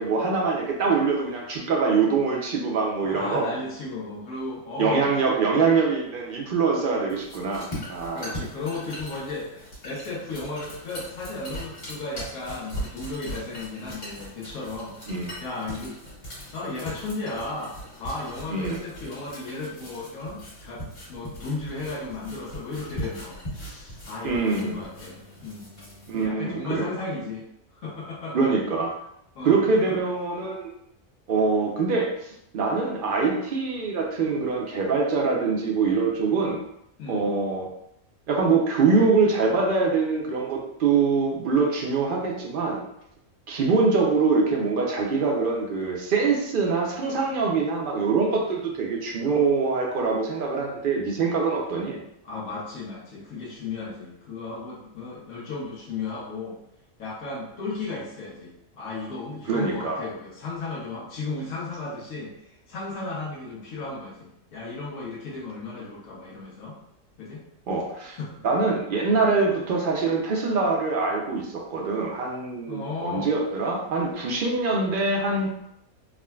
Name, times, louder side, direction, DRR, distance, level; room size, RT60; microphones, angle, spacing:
voice 1, 0.0-3.4 4.8-8.4 15.1-15.3 18.5-18.8 24.2-24.8 26.1-26.8 28.3-28.9 29.4-30.7 31.3-36.6 37.1-37.7 38.3-42.8 43.5-52.0 59.5-60.0 67.7-68.2 68.4-75.5, right 4 dB, 65° right, -1 dB, 0.5 m, -24 dB
voice 2, 3.0-5.1 8.1-14.9 15.4-16.0 16.5-20.8 21.1-25.7 26.1-27.4 27.7-28.5 29.3-29.9 37.0-37.3 52.2-56.6 57.0-66.8 67.2-67.4 68.0-68.4 72.7-73.3, left 3 dB, 85° left, -6 dB, 1.1 m, -35 dB
sound 1, 7.1-26.2, equal, 55° left, 1.4 m, -40 dB
3.5 x 2.1 x 2.2 m, 0.78 s
omnidirectional pair, 1.4 m